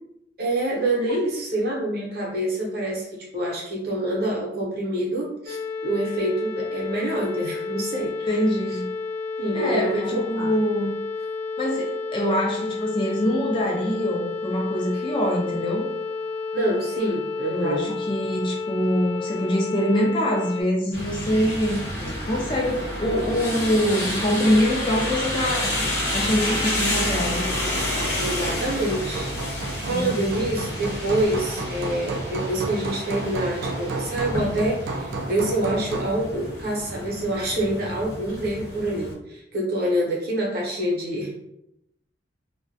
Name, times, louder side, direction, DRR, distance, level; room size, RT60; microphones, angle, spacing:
voice 1, 0.4-5.6 5.8-8.3 9.4-10.5 14.9-15.0 16.5-17.9 22.0-22.1 28.2-29.3 29.8-41.5, right 1 dB, 55° right, -3 dB, 0.7 m, -26 dB
sound 1, 5.5-20.6, left 4 dB, 90° left, 0.5 m, -31 dB
voice 2, 8.3-8.9 9.5-10.9 11.6-15.9 17.5-21.8 22.3-25.9 26.1-27.5 29.9-30.2, equal, 25° left, -1 dB, 0.3 m, -24 dB
sound 2, 20.9-39.1, left 1 dB, 45° left, 0.8 m, -30 dB
Hammer, 26.6-36.2, right 3 dB, 75° right, 0.3 m, -33 dB
2.2 x 2.1 x 2.6 m, 0.80 s
head